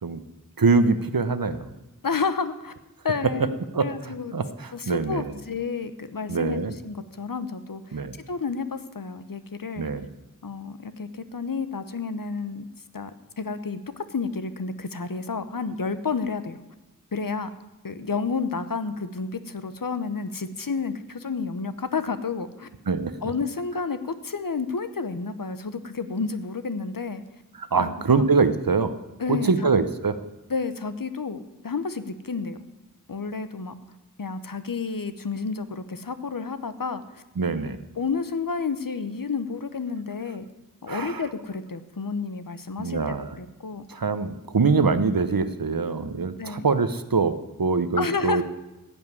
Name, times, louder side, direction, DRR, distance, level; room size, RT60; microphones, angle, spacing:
voice 1, 0.6-1.7 3.2-3.3 3.7-5.4 6.3-6.7 7.9-8.2 9.8-10.1 22.9-23.1 27.6-28.9 29.3-30.2 37.4-37.8 40.9-41.2 42.8-43.4 43.9-48.4, right 4 dB, 75° right, 12 dB, 0.9 m, -24 dB
voice 2, 2.0-2.7 3.0-4.3 4.7-8.0 8.3-9.9 10.4-12.7 12.9-16.6 17.1-17.5 17.8-22.7 23.2-27.2 27.8-28.3 29.2-29.5 30.5-32.6 33.1-33.8 34.2-37.2 38.0-40.5 40.8-43.9 46.4-46.7 48.0-48.4, left 4 dB, 70° left, 11 dB, 0.9 m, -30 dB
15.5 x 5.4 x 9.6 m, 1.0 s
wide cardioid pair, 45°, 35 cm